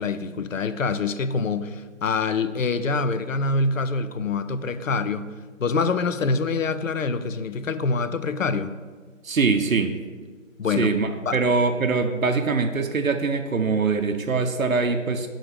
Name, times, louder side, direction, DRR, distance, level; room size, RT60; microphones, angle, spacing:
voice 1, 0.0-5.3 5.6-8.7 10.6-10.9 11.2-11.4, left 4 dB, 75° left, 11 dB, 0.5 m, -25 dB
voice 2, 9.2-10.0 10.8-15.3, right 4 dB, 85° right, 5 dB, 0.7 m, -23 dB
6.6 x 3.9 x 4.8 m, 1.5 s
figure-of-eight pair, 175°, 40 cm